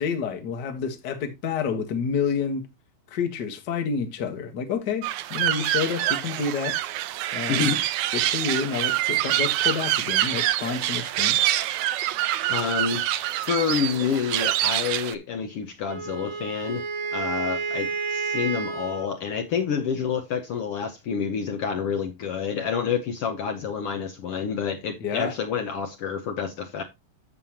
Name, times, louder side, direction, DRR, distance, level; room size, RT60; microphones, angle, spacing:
voice 1, 0.0-2.7 3.1-6.8 7.3-7.8 8.1-11.4 25.0-25.3, left 6 dB, 45° left, 1.4 m, -29 dB
sound 1, 5.0-15.2, right 14 dB, 85° right, 1.7 m, -25 dB
voice 2, 7.5-7.8 12.5-13.0 13.4-16.9 17.1-26.8, left 6 dB, 80° left, 1.3 m, -28 dB
Wind instrument woodwind instrument, 15.9-19.1, right 5 dB, 60° right, 2.4 m, -30 dB
11.0 x 7.1 x 2.9 m
omnidirectional pair, 4.0 m